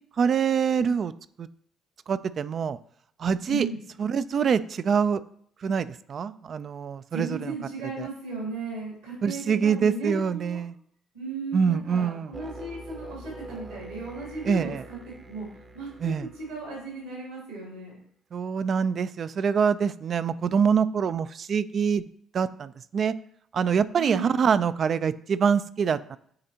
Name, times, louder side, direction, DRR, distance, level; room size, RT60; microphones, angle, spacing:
voice 1, 0.2-1.1 1.4-1.5 2.1-2.8 3.2-3.7 4.0-5.2 5.6-7.6 8.0-8.1 9.2-10.8 11.5-12.4 14.4-14.8 16.0-16.3 18.3-22.1 22.3-23.1 23.5-26.2, right 6 dB, 50° right, 14 dB, 0.3 m, -25 dB
voice 2, 3.5-3.8 7.1-10.6 11.1-15.0 15.2-15.5 15.7-17.9 24.0-24.3, right 3 dB, 80° right, -4 dB, 2.7 m, -36 dB
sound 1, 12.3-16.9, right 1 dB, 30° right, 0.7 m, -44 dB
8.8 x 4.0 x 2.8 m, 0.66 s
hypercardioid pair, 50°, 0 cm